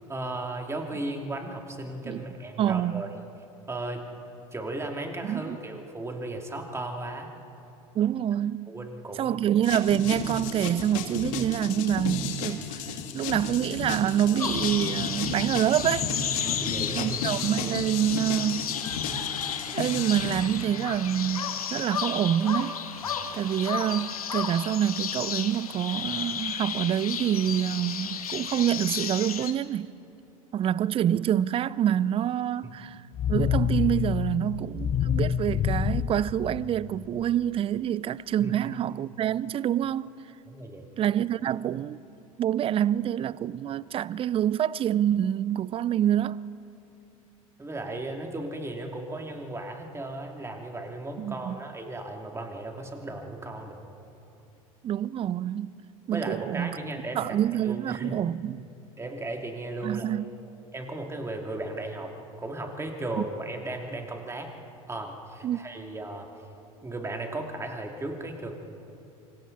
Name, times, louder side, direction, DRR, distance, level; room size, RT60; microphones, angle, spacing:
voice 1, 0.0-3.2 3.7-4.0 4.5-7.3 8.7-9.4 16.4-17.2 32.6-32.7 38.4-38.6 40.5-40.8 47.6-53.9 56.1-57.2 57.6-58.2 59.0-60.1 60.7-64.5 64.9-66.3 66.8-68.5, right 2 dB, 15° right, 3.0 m, -36 dB
voice 2, 2.6-3.0 5.2-5.6 7.9-8.8 9.2-12.8 13.1-16.1 17.0-18.7 19.7-22.7 23.3-29.9 30.5-33.0 33.3-40.1 41.0-42.0 42.4-46.4 51.2-51.6 54.8-55.7 56.1-56.8 57.1-58.6 59.8-60.2 65.4-65.6, right 10 dB, 30° right, 0.5 m, -26 dB
sound 1, 9.6-20.4, left 5 dB, 65° left, 2.5 m, -34 dB
sound 2, 14.4-29.5, left 8 dB, 80° left, 1.5 m, -33 dB
sound 3, 33.1-37.2, left 8 dB, 35° left, 0.8 m, -27 dB
27.5 x 26.0 x 4.3 m
hypercardioid pair, 80°, 18 cm